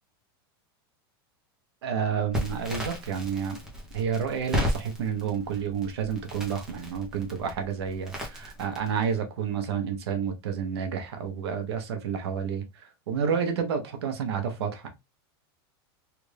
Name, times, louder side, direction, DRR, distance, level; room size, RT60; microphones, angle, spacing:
voice 1, 1.8-3.6 3.9-14.9, right 7 dB, 90° right, 1.1 m, -30 dB
Crackle, 2.3-9.1, equal, 5° right, 0.8 m, -35 dB
3.4 x 2.6 x 3.3 m
supercardioid pair, 165°, 13 cm